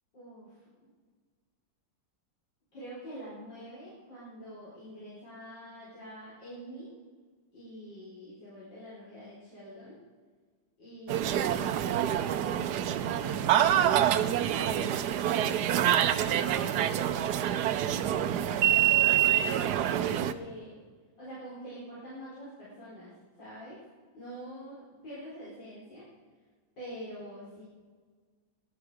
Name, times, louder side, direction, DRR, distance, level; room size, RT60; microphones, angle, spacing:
voice 1, 0.1-0.9 2.7-7.0 7.5-10.0 10.8-17.1 18.1-20.8 21.2-23.1 23.4-23.8 24.1-26.1 26.8-27.6, equal, 60° left, -10 dB, 5.5 m, -46 dB
sound 1, 11.1-20.3, right 11 dB, 65° right, 1.1 m, -26 dB
18.0 x 12.0 x 5.0 m, 1.5 s
omnidirectional pair, 2.2 m